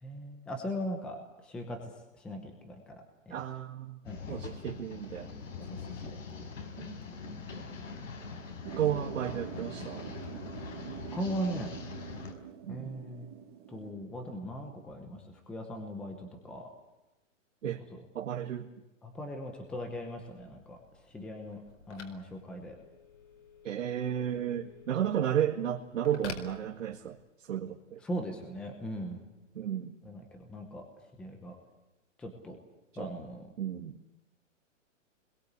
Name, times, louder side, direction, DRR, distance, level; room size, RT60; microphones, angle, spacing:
voice 1, 0.0-1.8 2.2-3.4 4.0-4.2 11.1-11.7 12.7-13.3 13.7-16.7 17.6-18.0 19.0-20.8 21.1-21.6 21.9-22.7 28.0-29.2 30.0-30.8 31.2-31.6 32.2-32.6 33.0-33.4, equal, 5° left, 4 dB, 0.9 m, -39 dB
voice 2, 3.3-4.0 4.3-5.3 6.8-7.0 8.8-10.1 12.6-12.9 17.6-17.8 18.1-18.7 23.6-28.0 29.6-30.0 32.9-33.1 33.6-34.0, right 10 dB, 75° right, 0 dB, 1.9 m, -33 dB
sound 1, 4.0-12.3, left 5 dB, 80° left, 5.2 m, -43 dB
sound 2, 8.6-13.9, right 9 dB, 30° right, 1.9 m, -45 dB
Telephone, 20.0-27.4, left 5 dB, 65° left, 4.6 m, -51 dB
26.0 x 21.5 x 8.2 m, 1.0 s
hypercardioid pair, 175°, 39 cm